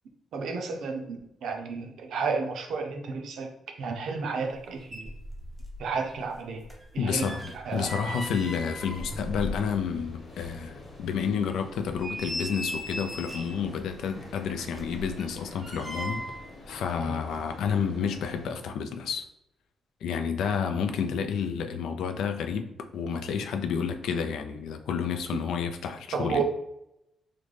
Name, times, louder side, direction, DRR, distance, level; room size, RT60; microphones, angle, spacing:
voice 1, 0.3-3.5 3.8-5.1 5.8-6.7 6.9-7.9 17.0-17.2 26.1-26.4, right 5 dB, 65° right, 3 dB, 0.5 m, -32 dB
sound 1, 4.5-4.6 4.8-5.8 6.1-10.0 10.4-10.5 11.0-11.1 11.7-13.7 14.5-16.5 16.8-16.9, equal, 5° right, 0.5 m, -38 dB
voice 2, 7.0-16.2 16.7-19.2 20.0-26.4, left 6 dB, 90° left, 6 dB, 0.4 m, -30 dB
sound 2, 7.7-18.5, left 1 dB, 30° left, 1.1 m, -48 dB
3.8 x 2.1 x 3.2 m, 0.82 s
wide cardioid pair, 175°, 0 cm